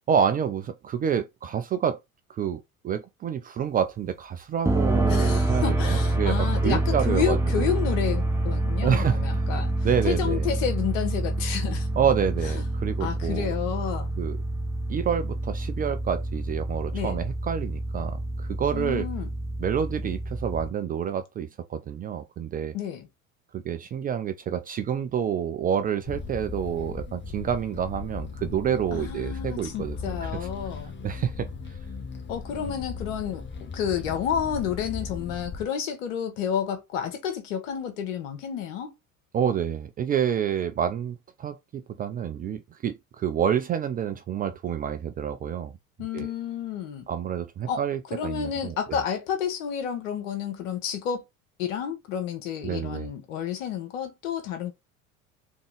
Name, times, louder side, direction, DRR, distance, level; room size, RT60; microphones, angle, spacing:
voice 1, 0.1-2.0 2.3-7.7 8.8-9.2 9.8-10.5 12.0-13.5 14.2-14.4 14.9-19.1 19.6-22.7 23.5-30.3 31.0-31.5 32.6-32.7 39.3-45.7 46.1-46.3 47.1-48.7 52.6-53.1, right 8 dB, 20° right, 0.4 m, -28 dB
sound 1, 4.6-20.7, right 2 dB, 5° right, 0.8 m, -27 dB
voice 2, 5.1-11.9 12.4-12.6 13.0-14.1 16.9-17.2 18.7-19.3 22.7-23.1 28.9-30.9 32.3-38.9 46.0-47.1 47.7-47.8 48.1-51.2 51.6-54.7, left 8 dB, 65° left, 1.5 m, -30 dB
sound 2, 26.0-35.6, left 4 dB, 25° left, 1.2 m, -37 dB
3.7 x 3.6 x 3.4 m
figure-of-eight pair, 70°, 42 cm